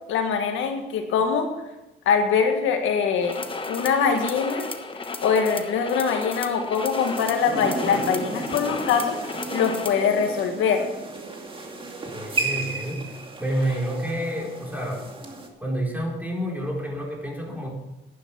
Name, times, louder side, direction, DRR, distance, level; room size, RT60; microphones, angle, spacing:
voice 1, 0.1-1.5 2.1-3.4 3.7-4.7 5.2-9.1 9.5-10.8, left 6 dB, 85° left, 4 dB, 1.7 m, -23 dB
sound 1, 3.2-10.1, left 3 dB, 25° left, 1.2 m, -34 dB
sound 2, 6.8-15.5, right 3 dB, 25° right, 2.3 m, -34 dB
voice 2, 12.1-15.1 15.6-17.7, right 1 dB, 10° right, -2 dB, 4.4 m, -29 dB
11.0 x 10.5 x 6.2 m, 1.0 s
cardioid pair, 90°, 20 cm